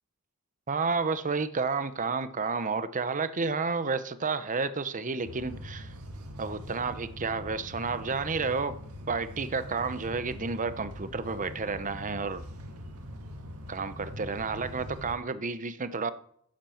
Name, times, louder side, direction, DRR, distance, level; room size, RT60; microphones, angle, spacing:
voice 1, 0.7-5.9 6.4-8.8 9.1-12.4 13.7-16.1, right 4 dB, 35° right, 0.8 m, -31 dB
sound 1, 5.2-15.1, equal, 70° right, 1.9 m, -43 dB
10.5 x 8.7 x 7.1 m
head